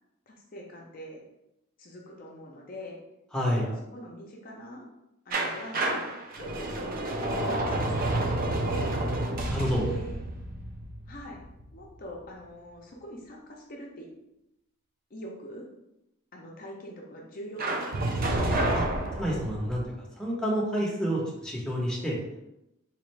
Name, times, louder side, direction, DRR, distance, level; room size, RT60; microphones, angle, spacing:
voice 1, 0.3-1.2 1.8-3.0 3.4-4.9 5.3-6.1 6.4-9.0 9.8-10.2 11.1-11.4 11.7-14.1 15.1-15.7 16.3-18.6, equal, 40° left, -1 dB, 0.5 m, -43 dB
voice 2, 3.3-3.6 9.5-9.9 18.7-18.8 19.1-19.8 20.2-22.2, equal, 5° left, -4 dB, 0.7 m, -28 dB
sound 1, 5.3-12.1 17.6-19.8, right 1 dB, 45° right, 0.5 m, -29 dB
4.2 x 2.4 x 3.1 m, 0.89 s
head